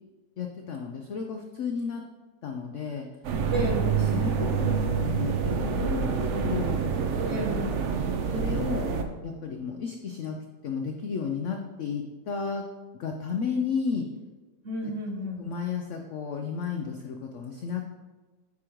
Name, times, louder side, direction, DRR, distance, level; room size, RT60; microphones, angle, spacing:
voice 1, 0.4-2.0 2.4-3.1 3.6-3.7 4.0-6.8 8.3-8.9 9.2-10.4 10.6-12.6 13.0-14.1 14.8-14.9 15.4-17.8, left 6 dB, 80° left, 3 dB, 0.6 m, -33 dB
sound 1, 3.2-9.0, right 6 dB, 75° right, 0.6 m, -27 dB
voice 2, 3.5-3.9 7.2-7.8 14.6-15.4, equal, 55° right, 1 dB, 1.0 m, -31 dB
9.7 x 4.9 x 3.0 m, 1.3 s
omnidirectional pair, 1.9 m